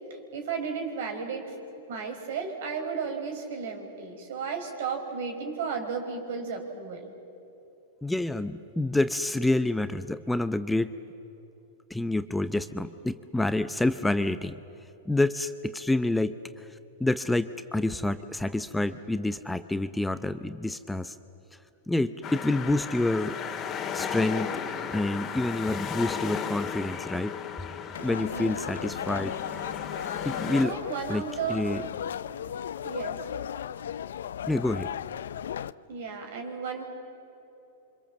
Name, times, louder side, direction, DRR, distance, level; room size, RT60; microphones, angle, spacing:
voice 1, 0.3-1.6 1.9-7.1 28.3-28.5 30.4-31.6 32.8-33.2 35.9-36.8, right 6 dB, 70° right, 4 dB, 5.1 m, -34 dB
voice 2, 8.0-10.9 11.9-14.5 15.1-16.7 17.0-21.2 21.9-23.4 23.9-24.6 24.9-27.3 28.0-29.4 30.2-30.8 31.1-31.2 31.5-31.8 34.5-34.9, left 2 dB, 5° left, 11 dB, 0.7 m, -28 dB
sound 1, 22.2-30.7, left 7 dB, 30° left, 2.2 m, -35 dB
sound 2, 27.9-35.7, left 9 dB, 80° left, 0.5 m, -36 dB
27.5 x 25.0 x 7.4 m, 2.9 s
hypercardioid pair, 120°, 0 cm